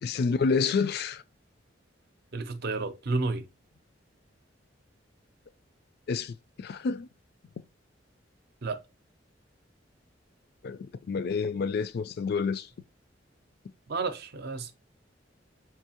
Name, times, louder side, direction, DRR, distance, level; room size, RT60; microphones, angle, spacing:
voice 1, 0.0-1.2 6.1-7.1 10.6-12.7, left 5 dB, 55° left, 0.3 m, -29 dB
voice 2, 2.3-3.4 8.6-8.8 13.9-14.7, right 3 dB, 60° right, 0.6 m, -31 dB
4.5 x 2.7 x 2.8 m
head